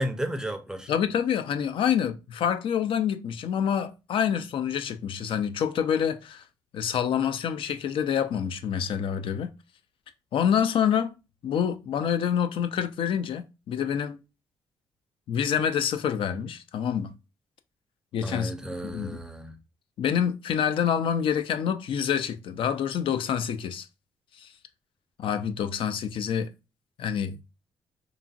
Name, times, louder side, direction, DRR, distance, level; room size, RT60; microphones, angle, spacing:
voice 1, 0.0-0.9 18.2-19.5, equal, 5° right, 0.5 m, -33 dB
voice 2, 0.9-6.4 6.7-9.5 10.3-11.1 11.4-14.2 15.3-17.1 18.1-18.5 18.8-19.2 20.0-23.9 24.4-24.5 25.2-26.5 27.0-27.4, left 8 dB, 65° left, 0.3 m, -27 dB
2.9 x 2.5 x 2.4 m
cardioid pair, 75°, 10 cm